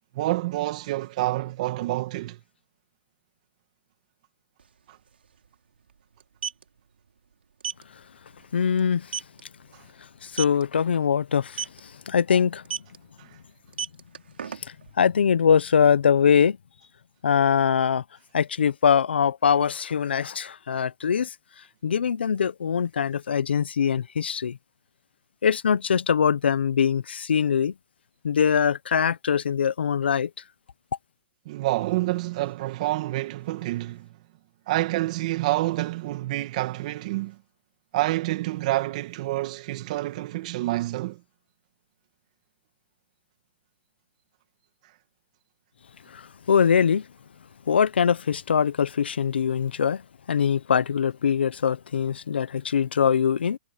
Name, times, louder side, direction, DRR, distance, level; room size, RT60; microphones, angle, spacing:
voice 1, 0.1-2.4 4.9-5.0 9.7-9.9 13.2-13.4 31.5-34.1 34.7-37.4 37.9-41.2, right 17 dB, 40° right, 2.0 m, -28 dB
sound 1, 4.6-4.7 4.9-5.1 6.2-6.6 7.6-7.8 8.3-8.4 8.8-8.9 9.1-9.4 10.3-10.6 11.5-11.8 12.7-13.0 13.6-14.9, right 7 dB, 85° right, 4.4 m, -32 dB
voice 2, 8.5-9.1 10.2-12.6 14.7-16.6 17.2-18.0 18.3-21.3 21.8-24.6 25.4-27.7 28.2-30.3 46.1-47.1 47.7-50.0 50.3-53.6, left 7 dB, 85° left, 0.9 m, -22 dB
hypercardioid pair, 155°, 6 cm